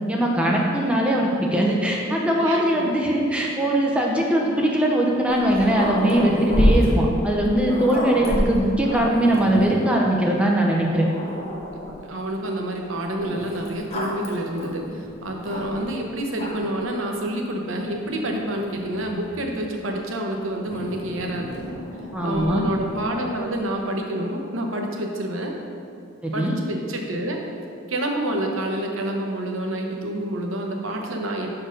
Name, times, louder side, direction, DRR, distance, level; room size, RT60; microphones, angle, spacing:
voice 1, 0.1-11.1 22.1-22.6 26.2-26.6, right 1 dB, 5° right, -2 dB, 0.6 m, -21 dB
voice 2, 2.4-2.9 7.7-7.8 12.0-21.5 22.2-25.6 26.3-27.4 27.9-31.5, right 1 dB, 75° right, 1 dB, 0.8 m, -28 dB
Growling, 5.3-9.9 10.6-10.7 11.0-12.1 13.2-16.0 16.3-16.8 17.7-19.5 20.7-23.2, equal, 30° left, 1.0 m, -29 dB
6.3 x 4.5 x 5.1 m, 2.4 s
head